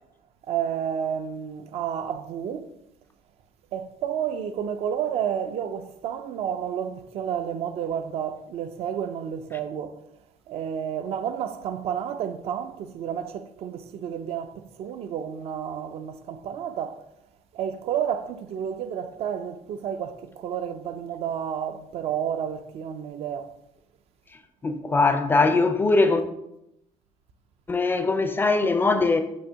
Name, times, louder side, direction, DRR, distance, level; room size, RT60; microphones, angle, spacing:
voice 1, 0.5-2.7 3.7-10.0 10.5-17.0 17.5-23.5, right 8 dB, 55° right, 0.4 m, -31 dB
voice 2, 24.6-26.2 27.7-29.2, left 3 dB, 15° left, 0.4 m, -21 dB
6.2 x 2.9 x 5.6 m
cardioid pair, 165°, 13 cm